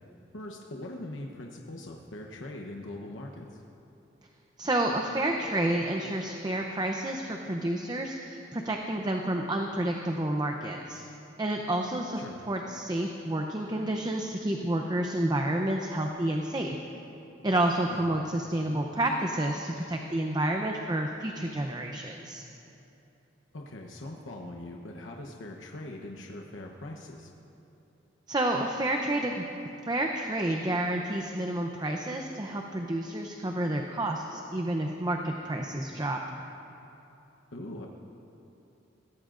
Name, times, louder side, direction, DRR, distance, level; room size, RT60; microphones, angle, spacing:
voice 1, 0.3-3.5 12.2-12.4 17.9-18.1 23.5-27.3 37.5-37.9, left 1 dB, 85° left, 0 dB, 1.0 m, -41 dB
voice 2, 4.6-11.0 11.4-16.8 17.4-22.4 28.3-29.4 29.9-36.2, right 1 dB, 20° right, 2 dB, 0.7 m, -30 dB
21.5 x 17.0 x 2.6 m, 2.9 s
head